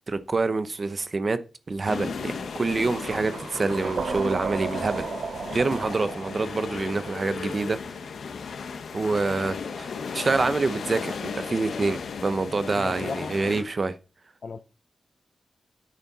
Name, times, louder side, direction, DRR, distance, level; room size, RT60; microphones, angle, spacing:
voice 1, 0.1-1.4 1.7-5.1 5.5-7.8 8.9-14.0, right 3 dB, 35° right, 0.9 m, -26 dB
sound 1, 1.9-13.6, left 5 dB, 90° left, 1.4 m, -35 dB
sound 2, 2.9-7.9, right 6 dB, 65° right, 0.5 m, -35 dB
voice 2, 12.7-13.4 14.4-14.6, left 4 dB, 45° left, 0.7 m, -35 dB
10.5 x 9.3 x 4.1 m
wide cardioid pair, 180°, 0 cm